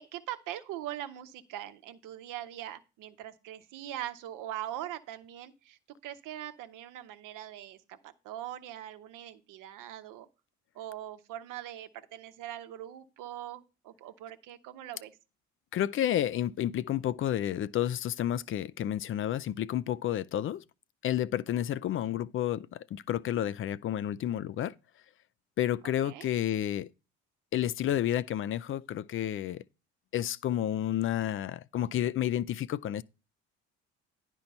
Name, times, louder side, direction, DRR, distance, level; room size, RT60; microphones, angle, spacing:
voice 1, 0.0-10.3 10.7-15.2 22.0-22.2 25.8-26.3, right 12 dB, 70° right, 1.0 m, -42 dB
voice 2, 15.7-20.6 21.0-24.7 25.6-26.9 27.5-29.6 30.1-33.0, left 11 dB, 40° left, 0.4 m, -30 dB
10.5 x 4.5 x 5.4 m
hypercardioid pair, 70°, 33 cm